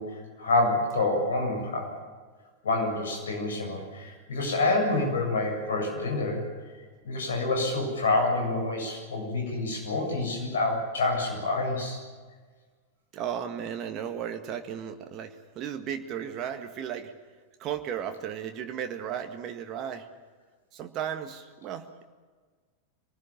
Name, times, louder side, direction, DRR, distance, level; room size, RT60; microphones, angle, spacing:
voice 1, 0.0-1.9 2.6-6.4 7.0-12.0, left 2 dB, 65° left, 2 dB, 7.6 m, -27 dB
voice 2, 13.1-17.2 17.6-20.1 20.7-22.0, right 9 dB, 35° right, 6 dB, 1.8 m, -35 dB
26.5 x 19.5 x 7.4 m, 1.5 s
figure-of-eight pair, 90°, 0 cm